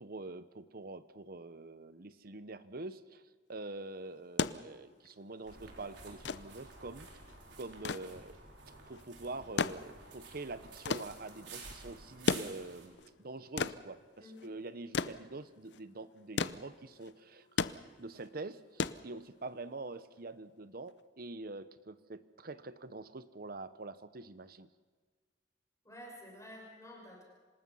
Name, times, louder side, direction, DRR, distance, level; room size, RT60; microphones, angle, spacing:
voice 1, 0.0-3.2 3.5-7.1 7.6-8.4 8.7-17.5 18.0-24.7, right 2 dB, 55° right, 13 dB, 0.9 m, -45 dB
sound 1, 4.1-19.7 20.9-21.0, left 4 dB, 75° left, 0.7 m, -38 dB
sound 2, 5.4-12.9, right 3 dB, 80° right, 4.5 m, -52 dB
voice 2, 14.2-14.5 25.8-27.2, left 1 dB, 20° left, -1 dB, 6.0 m, -50 dB
26.5 x 19.0 x 5.6 m, 1.5 s
head